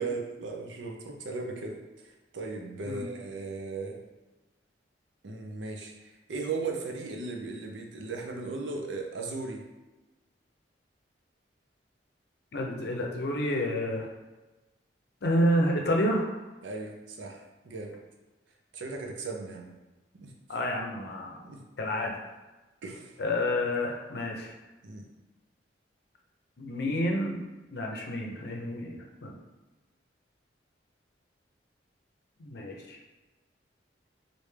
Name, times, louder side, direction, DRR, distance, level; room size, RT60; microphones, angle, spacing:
voice 1, 0.0-4.0 5.2-9.7 16.6-18.0 18.7-19.7 20.2-20.3 21.4-21.6 22.8-23.2 24.8-25.1, right 3 dB, 85° right, 2 dB, 0.5 m, -37 dB
voice 2, 12.5-14.1 15.2-16.3 20.5-21.4 21.8-22.1 23.2-24.5 26.6-27.4 27.7-29.4 32.4-33.0, left 1 dB, 60° left, 0 dB, 0.6 m, -29 dB
3.3 x 2.6 x 3.2 m, 1.1 s
head